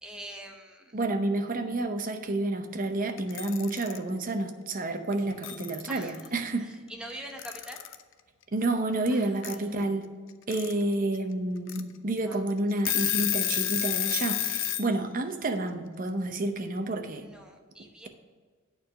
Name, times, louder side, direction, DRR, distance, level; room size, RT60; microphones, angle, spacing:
voice 1, 0.0-1.0 5.9-6.2 6.6-7.8 9.1-9.8 12.3-12.4 17.2-18.1, equal, 5° right, 2 dB, 0.9 m, -44 dB
voice 2, 0.9-6.7 8.5-10.1 10.5-17.3, right 2 dB, 40° right, 6 dB, 0.7 m, -29 dB
Alarm / Clock, 3.2-4.0 5.1-5.2 5.4-6.3 7.4-8.0 9.4-9.5 10.3-10.7 11.1-11.2 11.7-11.8 12.3-12.4 12.7-14.9, left 12 dB, 65° left, 0.5 m, -30 dB
9.0 x 4.7 x 6.2 m, 1.5 s
head